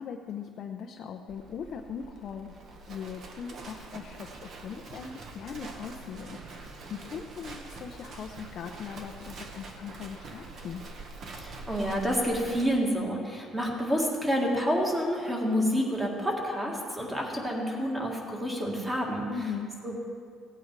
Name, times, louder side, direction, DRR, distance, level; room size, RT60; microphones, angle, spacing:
voice 1, 0.0-2.5 2.9-10.9 19.3-19.7, left 7 dB, 45° left, 3 dB, 0.6 m, -40 dB
Livestock farm animals working animals, 1.3-12.6, right 3 dB, 45° right, 1.2 m, -45 dB
voice 2, 11.4-19.3 19.8-20.0, equal, 10° right, -1 dB, 1.8 m, -28 dB
16.5 x 8.8 x 4.6 m, 2.2 s
cardioid pair, 155°, 0 cm